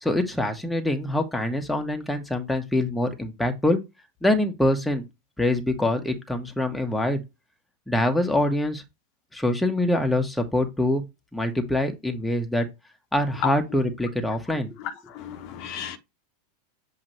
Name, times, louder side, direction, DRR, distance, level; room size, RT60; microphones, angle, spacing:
voice 1, 0.0-3.8 4.2-5.0 5.4-7.2 7.9-8.8 9.3-11.0 11.3-12.7 13.1-14.8, left 1 dB, 5° left, 1.3 m, -24 dB
voice 2, 14.8-16.0, left 8 dB, 50° left, 1.0 m, -32 dB
7.5 x 2.9 x 4.4 m
figure-of-eight pair, 90°, 0 cm